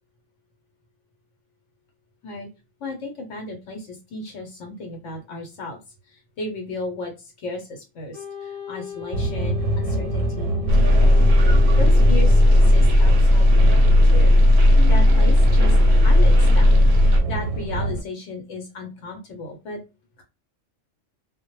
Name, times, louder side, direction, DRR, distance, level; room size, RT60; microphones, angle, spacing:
voice 1, 2.8-5.8 6.1-11.2 11.8-14.4 14.8-19.8 20.2-20.3, left 2 dB, 75° left, 3 dB, 1.0 m, -35 dB
Wind instrument woodwind instrument, 8.1-13.2, left 8 dB, 30° right, 0.5 m, -38 dB
sound 1, 9.1-18.0, right 2 dB, 90° right, 0.9 m, -26 dB
sound 2, 10.7-17.2, left 1 dB, 65° right, 0.7 m, -14 dB
2.1 x 2.0 x 2.9 m, 0.28 s
omnidirectional pair, 1.3 m